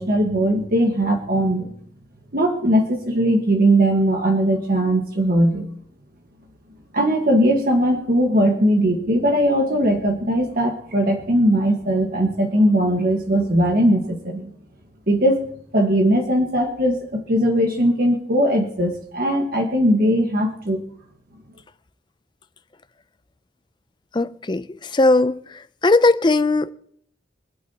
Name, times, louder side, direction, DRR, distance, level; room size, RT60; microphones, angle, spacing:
voice 1, 0.0-1.7 2.3-5.7 6.9-14.5 15.1-20.8, right 1 dB, 50° right, 1.5 m, -19 dB
voice 2, 24.1-25.4 25.8-26.7, left 2 dB, 25° left, 0.4 m, -18 dB
25.0 x 8.6 x 2.9 m
head